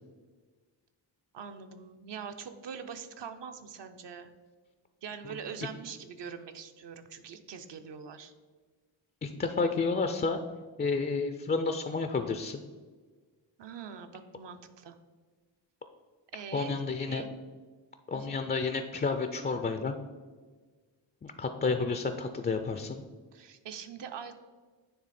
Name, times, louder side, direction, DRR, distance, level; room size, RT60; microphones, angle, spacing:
voice 1, 1.3-4.3 5.0-8.3 13.6-15.0 16.3-17.3 18.1-18.4 23.3-24.3, right 6 dB, 65° right, 7 dB, 0.7 m, -43 dB
voice 2, 9.2-10.4 10.8-12.6 16.5-17.2 18.1-19.9 21.2-23.0, left 4 dB, 25° left, 7 dB, 0.3 m, -30 dB
9.5 x 3.2 x 4.2 m, 1.4 s
cardioid pair, 85°, 45 cm